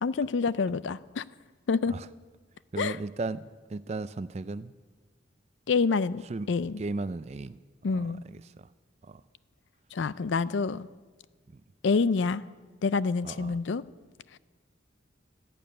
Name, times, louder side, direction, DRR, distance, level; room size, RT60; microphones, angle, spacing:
voice 1, 0.0-1.2 1.7-2.0 2.8-3.0 5.7-6.2 6.5-6.8 7.8-8.2 9.9-10.9 11.8-12.4 12.8-13.8 14.3-14.4, left 4 dB, 75° left, 17 dB, 0.4 m, -27 dB
voice 2, 2.7-4.7 6.2-6.5 6.8-7.6 7.9-8.7 9.0-9.2 11.5-11.6 13.2-13.6, right 3 dB, 35° right, 15 dB, 0.4 m, -36 dB
12.5 x 12.0 x 8.7 m, 1.4 s
head